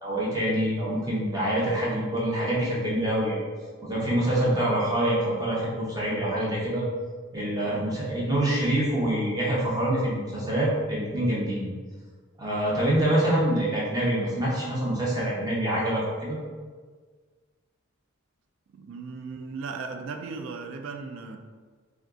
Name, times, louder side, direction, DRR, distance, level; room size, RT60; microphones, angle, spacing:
voice 1, 0.0-3.4 3.8-6.8 7.3-11.7 12.4-16.4, right 1 dB, 20° right, -6 dB, 0.7 m, -26 dB
voice 2, 7.6-7.9 18.7-21.4, right 4 dB, 65° right, 6 dB, 0.3 m, -37 dB
2.5 x 2.3 x 3.5 m, 1.5 s
head